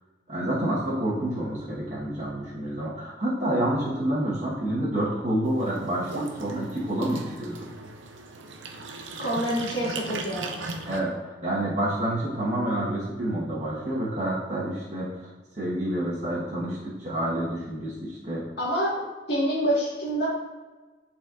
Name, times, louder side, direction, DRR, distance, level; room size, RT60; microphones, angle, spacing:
voice 1, 0.3-7.7 10.9-15.1 15.6-18.4, right 1 dB, 40° right, -7 dB, 1.3 m, -28 dB
sound 1, 5.4-11.0, right 3 dB, 85° right, 0.7 m, -38 dB
voice 2, 9.2-10.5 18.6-19.0 19.3-20.3, equal, 60° left, -6 dB, 1.7 m, -26 dB
10.5 x 4.3 x 2.5 m, 1.2 s
head